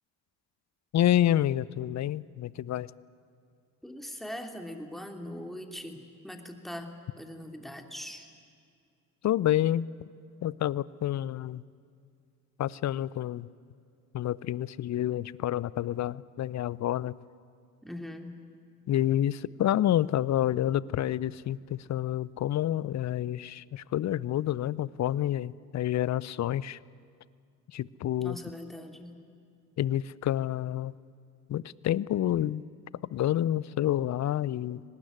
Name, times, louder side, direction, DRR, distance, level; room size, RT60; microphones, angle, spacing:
voice 1, 0.9-2.9 9.2-9.9 10.4-11.6 12.6-13.5 14.1-17.2 18.9-26.8 27.7-28.4 29.8-30.9 31.5-32.6 33.1-34.8, left 12 dB, 35° left, 22 dB, 0.6 m, -28 dB
voice 2, 3.8-8.3 17.8-18.4 28.2-29.2, left 1 dB, ahead, 4 dB, 3.0 m, -41 dB
24.5 x 19.0 x 9.7 m, 2.3 s
hypercardioid pair, 55°, 46 cm